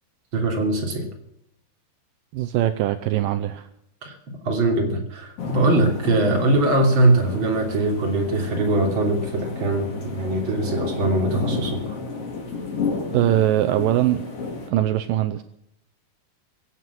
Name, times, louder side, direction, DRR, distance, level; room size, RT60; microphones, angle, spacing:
voice 1, 0.3-1.1 4.0-12.0, right 2 dB, 30° right, 2 dB, 3.3 m, -22 dB
voice 2, 2.3-3.7 13.1-14.2 14.7-15.4, right 13 dB, 80° right, 9 dB, 2.1 m, -21 dB
sound 1, 5.4-14.7, left 4 dB, 40° left, 2.9 m, -31 dB
23.5 x 8.4 x 6.1 m, 0.77 s
omnidirectional pair, 4.7 m